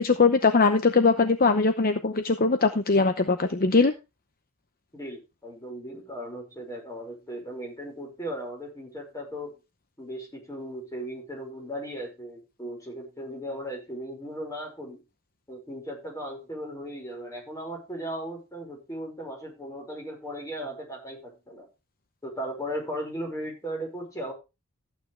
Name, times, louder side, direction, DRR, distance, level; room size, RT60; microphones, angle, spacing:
voice 1, 0.0-3.9, left 4 dB, 40° left, 9 dB, 0.8 m, -21 dB
voice 2, 4.9-9.5 10.0-15.0 15.5-21.7 22.2-24.3, equal, 15° left, 1 dB, 5.4 m, -37 dB
14.5 x 9.1 x 3.3 m, 0.27 s
head